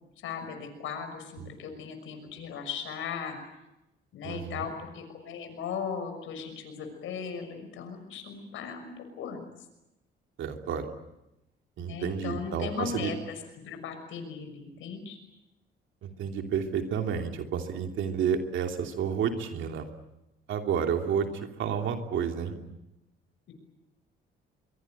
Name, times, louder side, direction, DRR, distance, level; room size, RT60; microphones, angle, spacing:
voice 1, 0.2-3.4 4.1-9.4 11.8-15.2 23.5-23.6, left 6 dB, 85° left, 6 dB, 6.2 m, -37 dB
voice 2, 4.2-4.7 10.4-10.9 11.8-13.1 16.0-19.9 20.5-22.6, right 7 dB, 75° right, 4 dB, 3.0 m, -30 dB
24.0 x 23.5 x 9.2 m, 0.94 s
cardioid pair, 90°, 20 cm